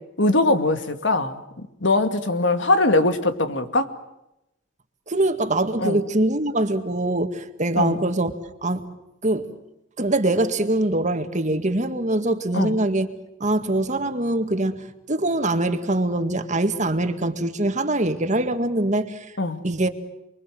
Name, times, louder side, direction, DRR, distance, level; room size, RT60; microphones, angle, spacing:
voice 1, 0.2-3.9 5.8-6.0 7.8-8.0 12.5-12.8 19.4-19.6, left 2 dB, 70° left, 9 dB, 2.2 m, -21 dB
voice 2, 5.1-8.3 8.6-8.9 9.2-9.5 10.0-13.1 13.4-19.3 19.6-19.9, right 1 dB, 40° right, 8 dB, 2.0 m, -23 dB
29.5 x 23.5 x 7.8 m, 0.88 s
head